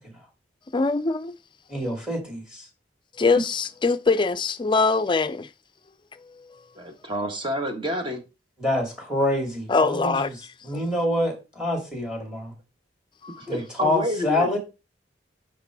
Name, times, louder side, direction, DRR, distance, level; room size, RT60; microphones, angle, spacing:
voice 1, 0.7-1.3 3.2-5.5 6.4-6.5 9.7-10.3 10.7-10.8, left 4 dB, 25° left, 0.4 m, -22 dB
voice 2, 1.7-2.4 8.6-10.2 10.6-12.5 13.5-14.6, left 1 dB, 5° right, 2.4 m, -26 dB
voice 3, 6.7-8.2 13.5-14.6, equal, 30° right, 1.4 m, -29 dB
6.0 x 5.1 x 4.6 m
head